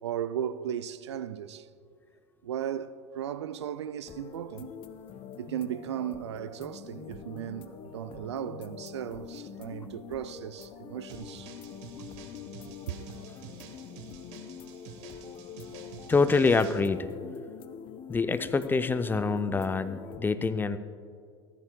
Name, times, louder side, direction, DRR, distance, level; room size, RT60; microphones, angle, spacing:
voice 1, 0.0-1.7 2.4-4.8 5.4-11.5 12.9-13.1, right 10 dB, 75° right, 0.5 m, -36 dB
sound 1, 4.1-20.2, left 7 dB, 35° left, 0.8 m, -45 dB
sound 2, 11.1-16.8, right 6 dB, 50° right, 1.3 m, -48 dB
voice 2, 16.1-17.1 18.1-20.8, left 4 dB, 15° left, 0.5 m, -26 dB
15.5 x 14.0 x 2.2 m
hypercardioid pair, 85°, 14 cm